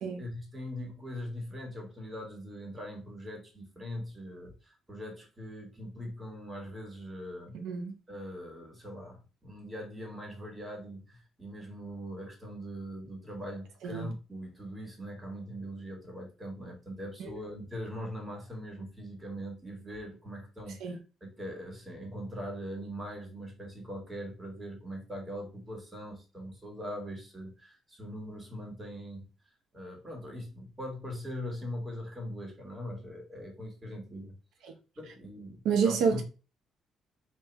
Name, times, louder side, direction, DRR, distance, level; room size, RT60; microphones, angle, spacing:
voice 1, 0.2-7.6 8.1-29.3 29.7-34.3 35.0-36.2, equal, 15° right, 1.8 m, -41 dB
voice 2, 7.5-7.9 13.8-14.1 17.2-17.3 20.8-21.0 34.6-34.7 35.6-36.2, right 6 dB, 80° right, 0.7 m, -28 dB
3.7 x 2.7 x 4.5 m
cardioid pair, 105°, 0 cm